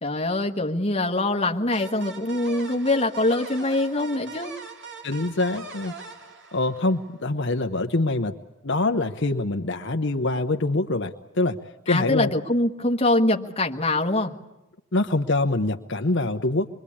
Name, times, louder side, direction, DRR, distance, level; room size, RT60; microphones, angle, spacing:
voice 1, 0.0-4.5 11.9-14.3, left 2 dB, 25° left, 3 dB, 1.4 m, -24 dB
sound 1, 1.7-7.1, right 3 dB, 50° right, 3.1 m, -41 dB
voice 2, 5.0-5.9 6.5-8.3 8.6-11.6 11.9-12.3 14.9-16.7, left 2 dB, 55° left, 5 dB, 0.9 m, -24 dB
27.0 x 22.5 x 8.6 m, 0.97 s
head